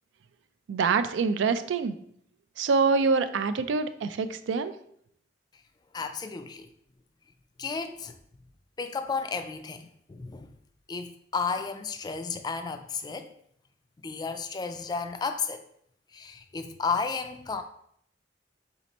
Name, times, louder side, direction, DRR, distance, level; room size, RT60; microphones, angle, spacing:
voice 1, 0.7-1.9 2.6-4.7, right 4 dB, 85° right, 0.3 m, -25 dB
voice 2, 5.9-6.7 7.6-8.2 8.8-10.5 10.9-13.3 14.0-15.6 16.1-17.6, left 5 dB, 25° left, 0.3 m, -33 dB
4.2 x 2.7 x 4.1 m
head